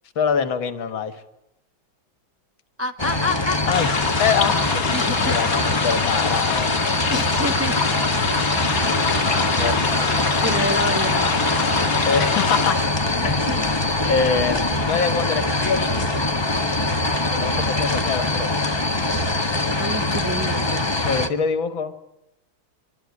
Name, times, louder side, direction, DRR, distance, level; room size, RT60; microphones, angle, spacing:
voice 1, 0.2-1.2 3.7-3.9 4.2-6.8 8.6-8.9 9.2-10.2 12.1-12.8 13.2-13.6 14.1-16.1 17.3-18.5 19.4-19.7 21.0-22.0, left 6 dB, 75° left, 11 dB, 2.4 m, -25 dB
voice 2, 2.8-4.0 4.9-5.3 7.1-7.8 10.4-11.4 13.2-13.7 19.8-20.9, left 1 dB, 15° right, 7 dB, 0.4 m, -28 dB
sound 1, 3.0-21.3, left 2 dB, 15° left, 1.1 m, -23 dB
sound 2, 3.7-12.7, left 5 dB, 45° left, 2.5 m, -25 dB
25.5 x 23.5 x 9.7 m, 0.88 s
omnidirectional pair, 2.2 m